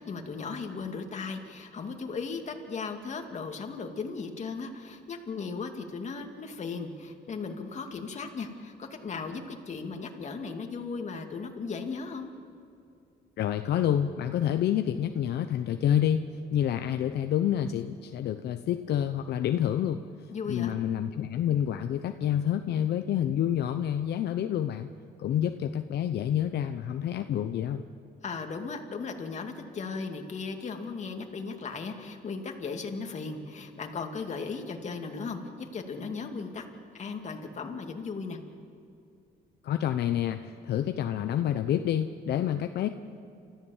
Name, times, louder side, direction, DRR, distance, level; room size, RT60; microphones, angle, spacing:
voice 1, 0.0-12.3 20.3-20.8 28.2-36.7 36.9-38.4, left 4 dB, 40° left, 4 dB, 2.4 m, -36 dB
voice 2, 13.4-16.2 16.5-20.0 20.5-24.9 25.2-27.8 39.6-42.9, left 10 dB, 75° left, 7 dB, 0.8 m, -28 dB
30.0 x 14.5 x 7.3 m, 2.5 s
cardioid pair, 110°, 17 cm